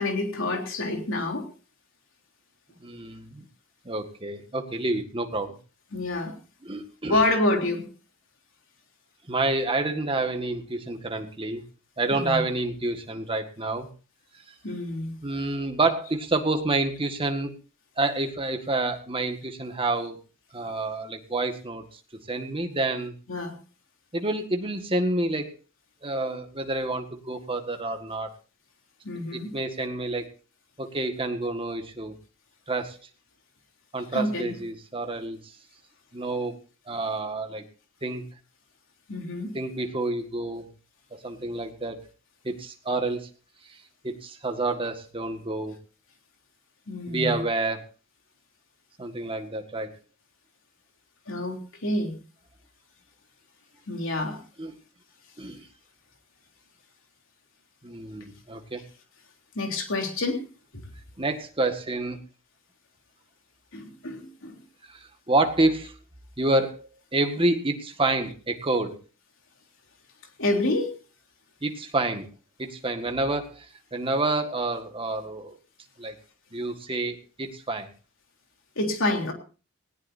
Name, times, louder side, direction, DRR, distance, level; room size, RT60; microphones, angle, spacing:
voice 1, 0.0-1.5 5.9-6.3 7.1-7.9 12.1-12.4 14.6-15.1 23.3-23.5 29.0-29.5 34.1-34.6 39.1-39.5 46.9-47.4 51.3-52.2 53.9-54.4 59.6-60.4 63.7-64.6 70.4-70.9 78.8-79.3, left 2 dB, 65° left, 2 dB, 3.5 m, -27 dB
voice 2, 2.8-3.5 3.9-5.6 6.6-7.2 9.3-11.6 12.0-13.9 15.2-17.5 18.0-20.2 20.5-21.8 22.3-23.1 24.1-25.5 26.0-28.3 29.3-30.2 30.8-32.1 32.7-33.0 33.9-35.5 36.1-36.6 36.9-37.6 38.0-38.2 39.5-40.7 41.1-42.0 42.4-43.3 43.7-43.8 44.0-45.8 47.1-47.8 49.0-49.9 54.6-54.7 55.4-55.6 57.8-58.8 61.2-62.2 64.9-65.9 66.4-69.0 71.6-72.3 72.6-73.7 73.9-75.6 76.0-76.2 76.5-77.9, right 2 dB, 25° right, 5 dB, 1.8 m, -28 dB
19.0 x 18.0 x 2.7 m, 0.36 s
head